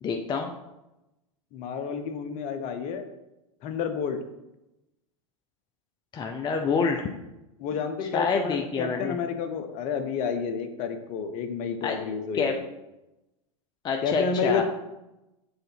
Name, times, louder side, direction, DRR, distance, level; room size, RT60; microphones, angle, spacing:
voice 1, 0.0-0.5 6.1-7.1 8.0-9.2 11.8-12.0 12.3-12.6 13.8-14.6, left 5 dB, 25° left, 3 dB, 0.7 m, -27 dB
voice 2, 1.5-3.0 3.6-4.2 7.6-12.7 14.0-14.6, left 6 dB, 45° left, 8 dB, 1.0 m, -30 dB
6.9 x 3.9 x 5.8 m, 0.96 s
hypercardioid pair, 100°, 18 cm